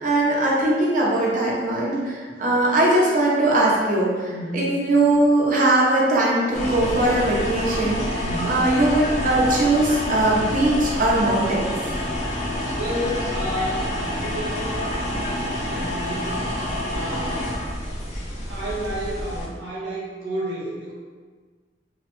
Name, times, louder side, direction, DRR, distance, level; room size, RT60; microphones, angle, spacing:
voice 1, 0.0-11.8, right 1 dB, 45° right, -4 dB, 0.6 m, -20 dB
voice 2, 4.3-4.8 8.2-8.7 12.4-14.7 15.7-16.5 16.9-17.5 18.5-20.9, equal, 80° right, -6 dB, 1.0 m, -31 dB
sound 1, 6.5-19.5, left 1 dB, 40° left, 0.5 m, -28 dB
3.0 x 2.1 x 3.0 m, 1.5 s
head